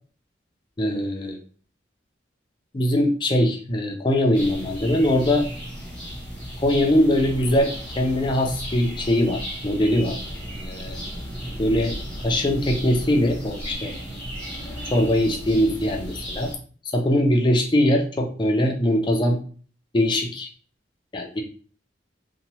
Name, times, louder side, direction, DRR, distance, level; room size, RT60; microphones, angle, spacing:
voice 1, 0.8-1.4 2.7-5.4 6.6-10.2 10.6-11.0 11.6-12.0 12.2-14.0 14.9-16.5 16.9-19.4 19.9-20.5 21.1-21.4, left 1 dB, 25° left, 2 dB, 0.5 m, -21 dB
sound 1, 4.3-16.6, equal, 10° left, 0.9 m, -35 dB
2.7 x 2.2 x 3.0 m, 0.41 s
head